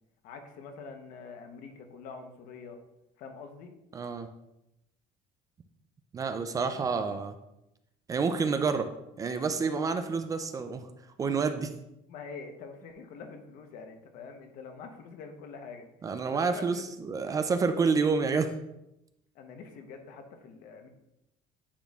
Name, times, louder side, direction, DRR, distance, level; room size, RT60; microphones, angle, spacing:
voice 1, 0.2-2.8 3.2-3.7 12.1-15.9 16.3-16.8 19.3-20.9, left 5 dB, 65° left, 5 dB, 1.0 m, -45 dB
voice 2, 3.9-4.3 6.1-7.3 8.1-8.9 9.2-10.9 11.2-11.7 16.0-18.5, right 5 dB, 25° right, 9 dB, 0.4 m, -28 dB
9.9 x 4.2 x 2.4 m, 0.87 s
cardioid pair, 155°, 15 cm